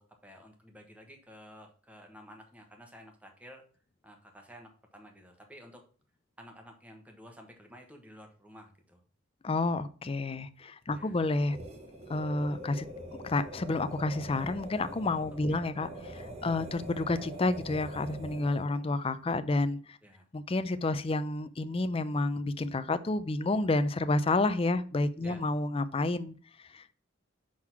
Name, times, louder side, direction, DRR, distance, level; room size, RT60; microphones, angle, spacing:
voice 1, 0.0-3.6 4.0-5.8 6.4-9.0 10.9-11.2 15.5-15.6 20.0-20.3 25.2-25.5, equal, 10° right, 3 dB, 1.2 m, -52 dB
voice 2, 9.4-11.6 12.1-12.9 13.2-20.0 20.3-26.3 26.7-26.9, left 2 dB, 30° left, 12 dB, 0.5 m, -30 dB
sound 1, 11.4-18.8, equal, 35° right, 1.2 m, -44 dB
6.3 x 3.8 x 5.8 m, 0.41 s
head